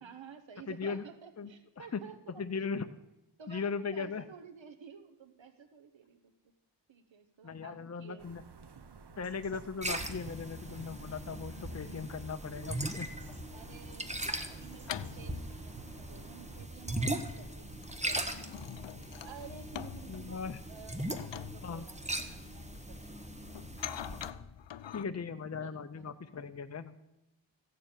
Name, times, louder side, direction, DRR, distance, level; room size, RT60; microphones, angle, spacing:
voice 1, 0.0-2.7 3.4-6.3 6.9-8.3 11.6-12.0 13.5-18.7 19.2-23.9 25.6-26.5, right 6 dB, 90° right, 8 dB, 1.1 m, -53 dB
voice 2, 0.7-1.0 1.4-1.5 1.8-2.0 2.3-2.9 3.5-4.2 7.4-8.4 9.2-13.1 20.1-20.6 21.6-21.9 24.9-26.9, left 5 dB, 35° left, 9 dB, 0.7 m, -38 dB
sound 1, 8.2-16.7, right 5 dB, 65° right, 1.0 m, -52 dB
sound 2, 9.8-24.3, right 1 dB, 15° right, 1.3 m, -40 dB
sound 3, 10.0-12.1 12.6-25.0, left 10 dB, 75° left, 0.6 m, -47 dB
15.5 x 6.9 x 8.9 m, 0.93 s
wide cardioid pair, 60°, 44 cm